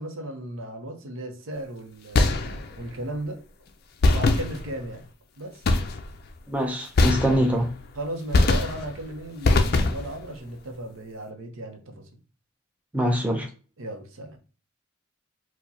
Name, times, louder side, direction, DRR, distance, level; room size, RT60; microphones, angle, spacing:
voice 1, 0.0-2.3 2.8-3.4 4.1-5.1 5.4-5.6 7.3-7.4 7.9-12.1 13.8-14.4, right 1 dB, 70° right, 0.7 m, -35 dB
sound 1, 2.2-2.9 4.0-5.0 5.6-6.3 7.0-7.8 8.3-9.0 9.4-10.3, left 2 dB, 45° left, 0.4 m, -22 dB
voice 2, 6.5-7.7 12.9-13.5, equal, 5° right, 0.5 m, -24 dB
4.6 x 2.1 x 2.7 m
head